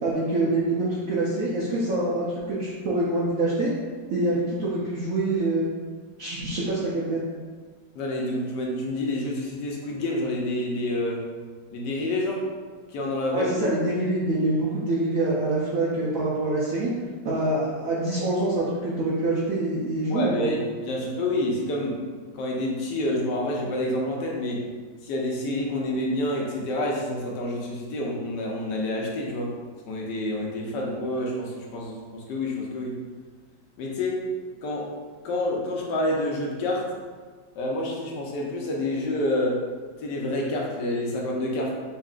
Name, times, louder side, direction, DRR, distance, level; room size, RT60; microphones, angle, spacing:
voice 1, 0.0-3.7 4.1-5.7 6.2-7.2 13.3-16.9 17.2-20.5, right 2 dB, 70° right, -7 dB, 0.8 m, -25 dB
voice 2, 7.9-11.2 11.7-12.4 12.9-13.5 20.1-22.0 22.3-24.7 25.0-29.6 29.9-33.0 33.8-34.2 34.6-34.9 35.2-36.9 37.6-39.6 40.0-41.7, left 1 dB, 70° left, -2 dB, 1.1 m, -28 dB
5.5 x 2.5 x 2.4 m, 1.5 s
omnidirectional pair, 2.0 m